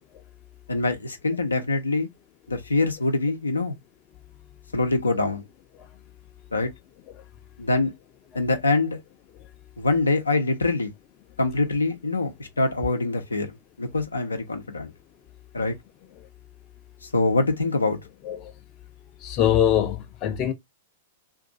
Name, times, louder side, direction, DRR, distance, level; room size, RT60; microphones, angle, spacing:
voice 1, 0.7-2.1 2.5-3.8 4.7-5.4 6.5-6.7 7.6-7.9 8.3-9.0 9.8-10.9 11.4-13.5 13.8-14.9 15.5-15.8 17.1-18.0, left 2 dB, 80° left, 0.7 m, -24 dB
voice 2, 19.2-20.5, left 10 dB, 35° left, 0.6 m, -23 dB
2.6 x 2.5 x 3.7 m
figure-of-eight pair, 100°, 0 cm